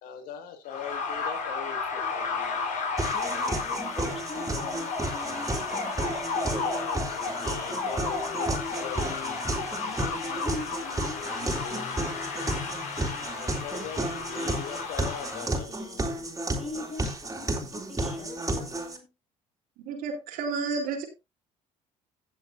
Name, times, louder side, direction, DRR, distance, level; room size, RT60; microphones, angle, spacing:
voice 1, 0.0-2.7 6.6-8.5 8.8-9.4 13.2-16.1 16.8-16.9, left 7 dB, 75° left, 6 dB, 2.1 m, -41 dB
sound 1, 0.7-15.5, left 4 dB, 60° left, 4.4 m, -33 dB
sound 2, 3.0-19.0, right 2 dB, 20° right, 3.7 m, -33 dB
voice 2, 3.1-5.6 9.8-12.2 16.6-19.1, left 3 dB, 40° left, 2 dB, 6.0 m, -42 dB
voice 3, 19.8-21.0, right 4 dB, 75° right, 2 dB, 3.8 m, -31 dB
17.5 x 7.3 x 2.7 m, 0.25 s
supercardioid pair, 75°, 15 cm